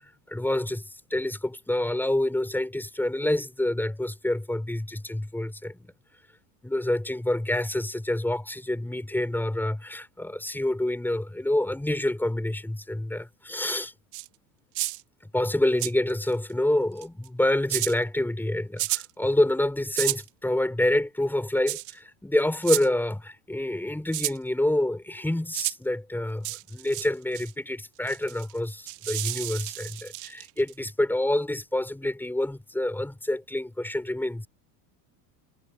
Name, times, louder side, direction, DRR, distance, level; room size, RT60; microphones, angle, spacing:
voice 1, 0.3-5.9 6.6-13.9 15.3-34.5, left 1 dB, 5° left, 5.6 m, -27 dB
sound 1, 14.1-14.3 14.8-15.0 15.8-16.3 17.0-17.3 17.7-17.9 18.8-19.1 19.9-20.3 21.7-21.9 22.6-22.9 24.1-24.4 25.5-25.7 26.4-27.1 27.3-27.5 28.1-30.7, right 18 dB, 50° right, 3.8 m, -31 dB
supercardioid pair, 135°, 50 cm